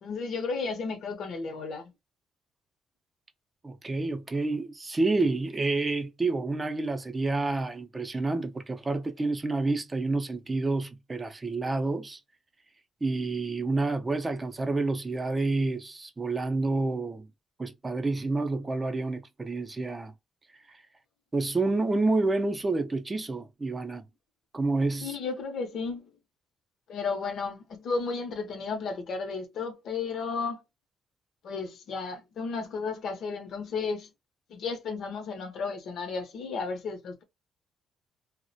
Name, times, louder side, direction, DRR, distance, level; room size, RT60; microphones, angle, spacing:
voice 1, 0.0-1.9 25.0-26.1 26.9-30.6 31.4-34.1 34.5-37.2, left 4 dB, 70° left, 0.6 m, -33 dB
voice 2, 3.6-12.2 13.0-17.3 17.6-20.1 21.3-24.0 24.5-25.2, right 3 dB, 25° right, 0.5 m, -29 dB
2.4 x 2.0 x 2.6 m
cardioid pair, 90°, 0 cm